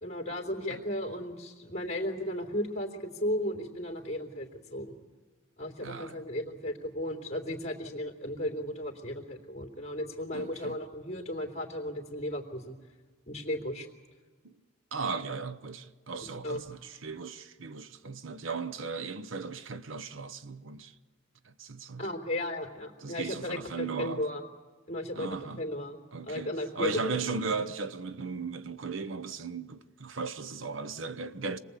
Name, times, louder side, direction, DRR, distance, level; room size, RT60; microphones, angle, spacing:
voice 1, 0.0-5.0 5.6-12.8 13.3-13.9 16.4-16.6 22.0-24.4 24.9-26.0 26.2-27.2, left 1 dB, 35° left, 3.1 m, -35 dB
voice 2, 5.8-6.2 10.3-10.8 14.4-14.5 14.9-20.9 21.4-22.1 23.0-24.3 25.1-25.6 26.1-31.6, right 4 dB, 75° right, 0.9 m, -37 dB
26.5 x 20.0 x 8.3 m
head